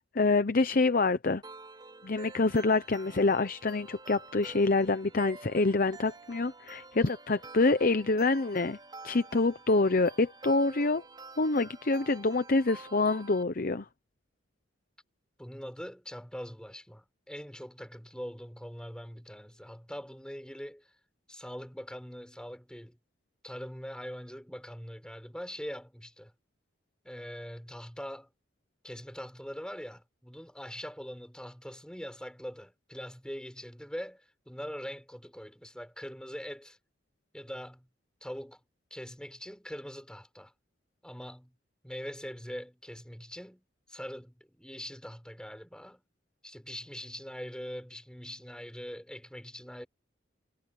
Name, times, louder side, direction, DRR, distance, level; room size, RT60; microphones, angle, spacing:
voice 1, 0.0-1.4 2.0-8.8 9.0-11.0 11.4-13.9, left 3 dB, 50° left, 0.8 m, -26 dB
sound 1, 1.4-13.4, right 3 dB, 25° right, 3.9 m, -49 dB
voice 2, 15.4-20.9 21.3-23.0 23.4-26.3 27.0-28.3 28.8-36.8 37.3-37.9 38.2-38.6 38.9-40.5 41.0-41.5 41.8-46.0 46.4-49.9, equal, 5° left, 6.1 m, -42 dB
head